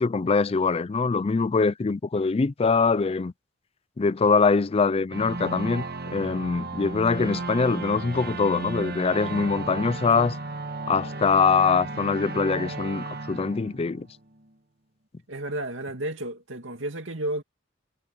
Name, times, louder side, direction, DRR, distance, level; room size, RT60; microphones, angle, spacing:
voice 1, 0.0-3.3 4.0-5.8 6.1-10.4 10.9-14.1, left 4 dB, 30° left, 0.4 m, -23 dB
sound 1, 5.1-14.4, right 3 dB, 55° right, 1.8 m, -34 dB
voice 2, 15.3-17.4, right 1 dB, 80° right, 2.4 m, -32 dB
head